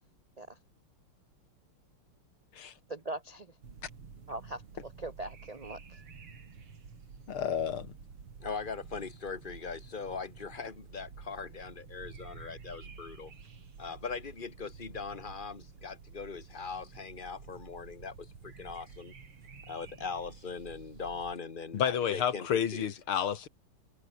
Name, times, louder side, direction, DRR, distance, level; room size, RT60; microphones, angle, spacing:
voice 1, 2.9-3.5 4.3-6.0, right 2 dB, 70° right, 0.3 m, -41 dB
sound 1, 3.6-21.3, right 5 dB, 90° right, 4.1 m, -51 dB
voice 2, 7.3-7.9 21.7-23.5, left 8 dB, 75° left, 2.4 m, -30 dB
voice 3, 8.4-13.3 13.8-19.1 19.7-22.9, left 5 dB, 25° left, 1.8 m, -40 dB
omnidirectional pair, 2.4 m